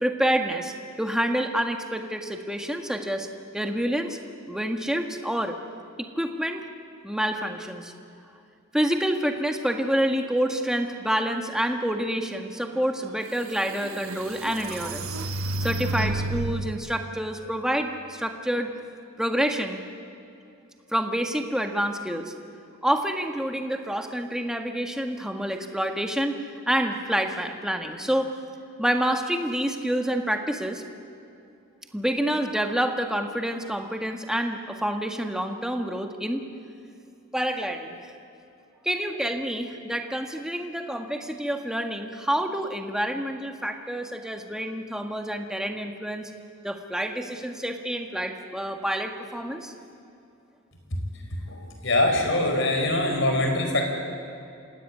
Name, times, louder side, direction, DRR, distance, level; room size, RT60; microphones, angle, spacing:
voice 1, 0.0-3.3 3.5-4.2 4.5-5.5 6.0-6.6 7.0-7.9 8.7-15.2 15.6-18.7 19.2-19.8 20.9-22.3 22.8-26.4 26.7-28.3 28.8-30.8 31.9-36.4 37.3-37.9 38.8-46.3 46.6-49.7, equal, 5° right, 4 dB, 1.7 m, -28 dB
sound 1, 13.0-13.1 13.7-16.8, right 2 dB, 90° right, 1.6 m, -31 dB
voice 2, 51.5-53.9, left 1 dB, 60° left, 3 dB, 5.1 m, -23 dB
27.0 x 16.5 x 9.7 m, 2.7 s
head